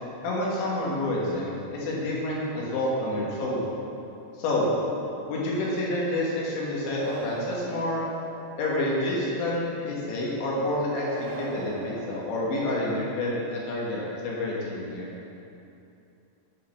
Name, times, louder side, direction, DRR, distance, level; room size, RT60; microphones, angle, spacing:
voice 1, 0.2-3.6 4.4-4.7 5.3-8.1 8.6-15.1, left 1 dB, 75° left, -5 dB, 3.7 m, -28 dB
sound 1, 6.8-8.9 11.0-13.1, right 4 dB, 85° right, 3.0 m, -40 dB
8.4 x 6.5 x 5.7 m, 2.7 s
omnidirectional pair, 5.5 m